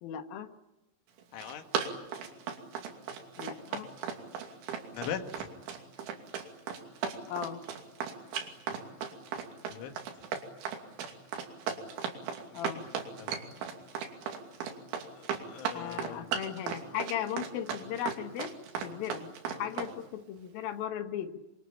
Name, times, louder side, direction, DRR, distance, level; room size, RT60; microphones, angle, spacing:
voice 1, 0.0-0.5 3.4-3.9 7.3-7.6 12.5-12.9 15.7-18.5 18.8-21.4, left 10 dB, 60° left, 7 dB, 2.9 m, -37 dB
Run, 1.2-19.9, right 7 dB, 80° right, 5.0 m, -36 dB
voice 2, 1.3-1.7 4.9-5.5 9.7-9.9 13.2-13.4 15.1-16.4, left 8 dB, 85° left, 6 dB, 4.5 m, -40 dB
26.0 x 25.0 x 8.7 m, 0.96 s
omnidirectional pair, 5.3 m